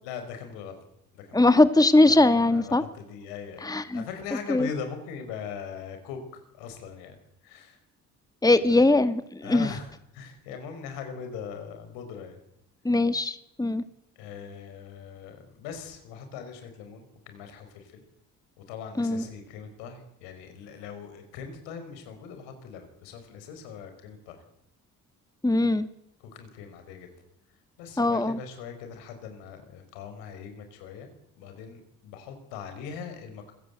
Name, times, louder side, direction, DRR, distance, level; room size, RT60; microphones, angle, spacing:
voice 1, 0.0-0.8 1.1-1.6 2.0-7.8 8.7-8.8 9.4-12.4 14.1-18.0 18.6-24.4 26.2-27.1 27.8-31.1 31.4-33.5, left 6 dB, 75° left, 7 dB, 4.9 m, -41 dB
voice 2, 1.3-2.8 3.6-4.0 4.5-4.7 8.4-9.7 12.8-13.8 19.0-19.2 25.4-25.9 28.0-28.4, left 2 dB, 10° left, 11 dB, 1.7 m, -21 dB
26.0 x 16.0 x 8.1 m, 0.84 s
hypercardioid pair, 50°, 44 cm